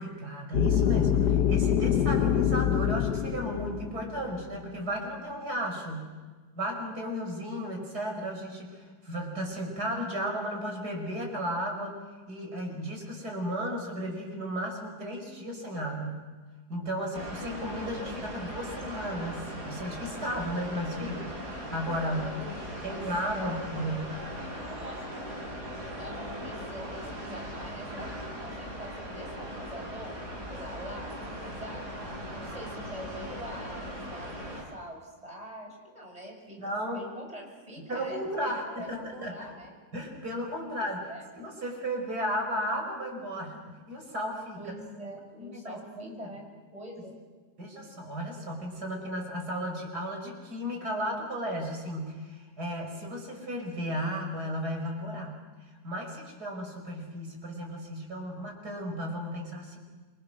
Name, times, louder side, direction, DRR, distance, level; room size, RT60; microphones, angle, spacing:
voice 1, 0.0-6.1 6.5-12.0 12.3-16.2 16.7-22.3 22.8-24.1 36.6-37.0 37.9-39.3 39.9-41.0 41.4-43.6 43.9-44.8 45.4-46.1 47.6-55.4 55.8-59.8, equal, 80° right, 2 dB, 5.9 m, -34 dB
sound 1, 0.5-4.5, left 9 dB, 80° left, 1.5 m, -25 dB
sound 2, 17.1-34.6, equal, 60° right, 7.0 m, -39 dB
voice 2, 21.6-23.0 23.3-24.0 24.7-25.3 26.0-30.2 30.5-31.8 32.3-39.7 40.8-41.4 44.6-46.5 46.7-47.1, equal, 20° right, 1 dB, 6.7 m, -44 dB
28.5 x 24.0 x 6.4 m, 1.3 s
omnidirectional pair, 1.7 m